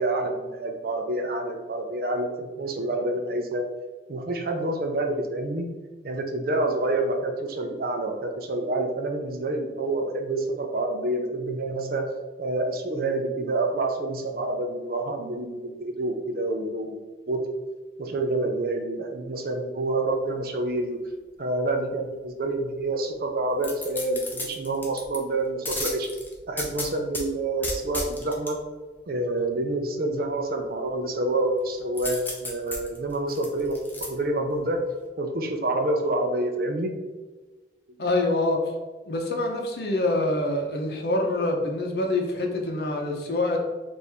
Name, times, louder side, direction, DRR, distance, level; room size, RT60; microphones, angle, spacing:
voice 1, 0.0-3.6 4.1-5.7 6.0-12.1 12.4-17.0 17.3-17.4 18.0-21.0 21.4-26.1 26.5-28.6 29.1-33.8 34.1-34.8 35.2-36.9, right 2 dB, 55° right, 4 dB, 0.5 m, -27 dB
sound 1, 23.6-25.2 25.6-27.2 27.6-28.5 32.0-34.1 34.5-34.6, left 2 dB, 10° left, 0.6 m, -33 dB
voice 2, 38.0-38.6 39.1-43.6, left 2 dB, 60° left, 2 dB, 0.7 m, -25 dB
4.5 x 2.6 x 3.4 m, 1.3 s
head